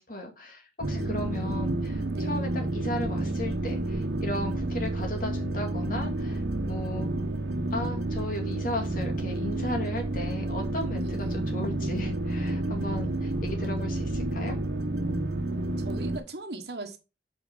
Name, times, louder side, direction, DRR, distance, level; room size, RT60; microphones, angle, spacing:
voice 1, 0.0-7.1 7.7-14.6, left 1 dB, 50° left, 2.4 m, -36 dB
sound 1, 0.8-16.2, right 2 dB, 80° right, 1.0 m, -30 dB
voice 2, 1.3-1.8 2.1-2.4 11.0-11.4 15.8-17.0, right 2 dB, 65° right, 1.3 m, -40 dB
8.3 x 4.5 x 5.3 m
head